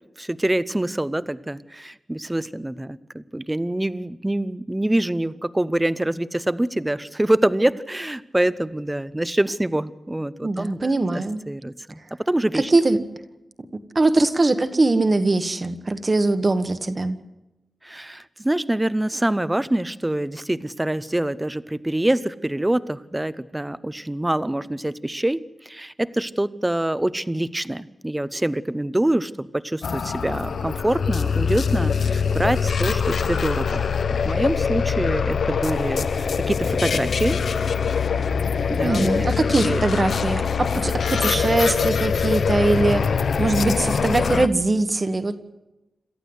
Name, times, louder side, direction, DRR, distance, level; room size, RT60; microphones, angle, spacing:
voice 1, 0.2-12.7 17.8-33.8 34.1-37.4 38.7-39.1 39.5-39.8, right 1 dB, 10° right, 15 dB, 0.7 m, -25 dB
voice 2, 10.4-11.4 12.5-13.0 13.9-17.2 38.8-43.1 43.4-45.4, right 2 dB, 30° right, 9 dB, 1.3 m, -21 dB
sound 1, 29.8-44.5, left 6 dB, 75° left, 0.7 m, -23 dB
27.5 x 14.0 x 8.0 m, 0.99 s
wide cardioid pair, 160°, 0 cm